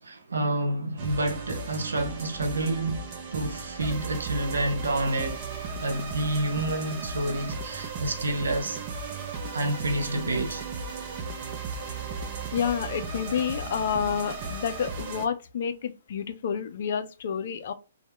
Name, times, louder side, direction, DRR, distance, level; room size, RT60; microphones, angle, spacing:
voice 1, 0.0-5.4 5.8-8.8 9.5-10.7, right 1 dB, 85° right, 0.6 m, -29 dB
sound 1, 1.0-15.2, right 4 dB, 40° right, 0.5 m, -35 dB
voice 2, 12.5-17.7, left 7 dB, 55° left, 0.5 m, -29 dB
2.2 x 2.0 x 2.9 m
hypercardioid pair, 130°, 0 cm